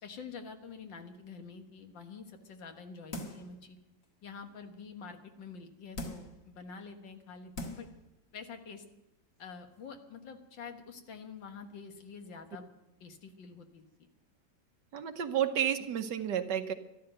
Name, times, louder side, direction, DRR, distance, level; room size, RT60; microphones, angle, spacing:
voice 1, 0.0-3.8 4.2-7.9 8.3-8.9 9.4-12.7 13.0-13.8, left 5 dB, 70° left, 5 dB, 2.1 m, -47 dB
sound 1, 3.1-3.6 4.0-4.1 5.9-6.4 7.1-7.2 7.5-8.0 8.3-8.4, left 1 dB, 45° left, 2.0 m, -41 dB
voice 2, 14.9-16.7, right 9 dB, 65° right, 9 dB, 1.5 m, -31 dB
13.0 x 12.5 x 7.9 m, 0.93 s
omnidirectional pair, 2.1 m